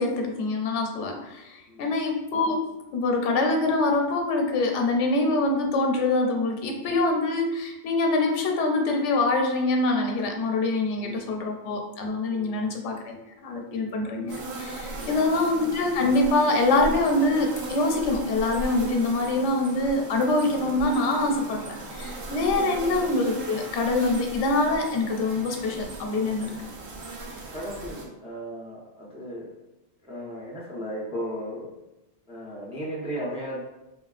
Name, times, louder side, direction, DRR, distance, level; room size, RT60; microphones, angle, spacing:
voice 1, 0.0-2.6 2.9-13.2 13.4-26.5, left 2 dB, 90° left, 2 dB, 0.9 m, -25 dB
voice 2, 10.9-11.3 12.2-12.7 14.9-15.1 15.4-15.5 22.3-22.8 26.4-26.7 27.5-29.5 30.0-31.7 32.3-33.6, equal, 10° right, -5 dB, 0.4 m, -36 dB
sound 1, 14.3-28.1, right 2 dB, 75° right, 0.9 m, -38 dB
3.3 x 2.3 x 2.4 m, 0.96 s
omnidirectional pair, 1.2 m